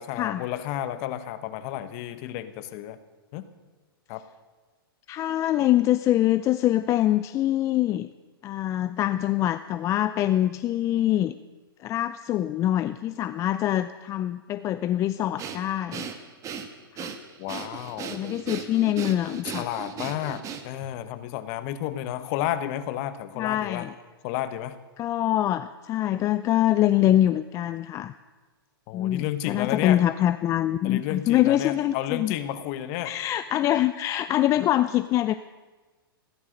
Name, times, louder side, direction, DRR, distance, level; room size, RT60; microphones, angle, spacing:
voice 1, 0.0-3.0 3.3-3.5 4.1-4.2 17.4-18.3 19.4-23.9 24.2-24.8 28.9-30.0 30.8-33.1, left 12 dB, 40° left, 12 dB, 1.1 m, -32 dB
voice 2, 5.1-8.1 8.4-11.4 11.8-16.1 16.9-17.1 18.1-19.7 23.4-23.9 25.0-28.1 28.9-32.3 33.0-35.3, left 13 dB, 25° left, 12 dB, 0.4 m, -24 dB
Breathing, 15.4-20.9, right 7 dB, 25° right, 1.3 m, -37 dB
14.5 x 12.5 x 6.5 m, 1.3 s
hypercardioid pair, 125°, 13 cm